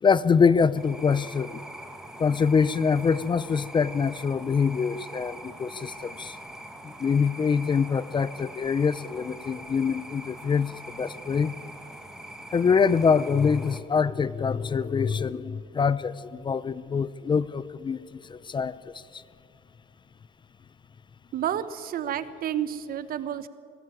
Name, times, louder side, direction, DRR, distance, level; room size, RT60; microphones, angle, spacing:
voice 1, 0.0-1.6 2.2-6.4 6.8-11.5 12.5-19.2, left 6 dB, 30° left, 18 dB, 0.5 m, -25 dB
sound 1, 0.8-13.8, right 1 dB, 5° right, 1.6 m, -43 dB
voice 2, 21.3-23.5, right 10 dB, 60° right, 14 dB, 1.1 m, -30 dB
22.5 x 13.0 x 9.5 m, 2.4 s
cardioid pair, 110°, 17 cm